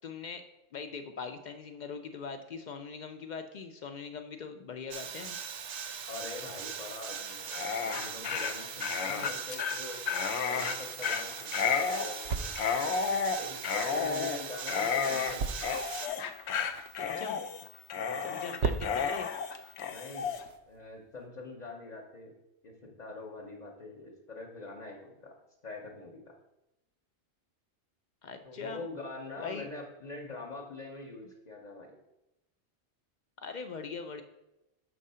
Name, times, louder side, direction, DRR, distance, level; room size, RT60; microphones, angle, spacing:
voice 1, 0.0-5.4 17.0-17.4 18.2-19.3 28.2-28.8 29.4-29.7 33.4-34.2, left 5 dB, 60° left, 8 dB, 0.5 m, -41 dB
sound 1, 4.9-16.1, right 7 dB, 55° right, 0.7 m, -40 dB
voice 2, 6.1-10.0 10.4-15.4 18.0-18.3 19.8-20.4 20.7-22.3 22.6-22.7 23.0-25.3 25.6-26.2 28.4-31.9, left 3 dB, 40° left, -2 dB, 0.9 m, -44 dB
Dog, 7.4-20.4, left 6 dB, 75° left, 0.9 m, -32 dB
sound 2, 10.1-21.3, right 5 dB, 85° right, 0.9 m, -41 dB
6.7 x 3.7 x 5.5 m, 0.93 s
omnidirectional pair, 1.2 m